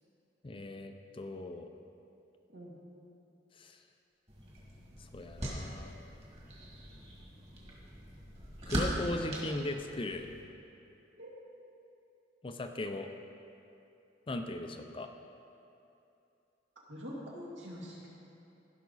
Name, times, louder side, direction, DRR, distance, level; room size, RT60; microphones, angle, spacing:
voice 1, 0.4-1.7 3.6-3.8 5.0-5.9 8.7-10.3 12.4-13.1 14.3-15.1, left 2 dB, 30° left, 6 dB, 0.5 m, -38 dB
sound 1, 4.3-10.4, right 1 dB, 35° right, 1.9 m, -40 dB
voice 2, 16.9-18.1, equal, 80° right, -4 dB, 2.1 m, -44 dB
15.0 x 5.9 x 4.0 m, 2.8 s
head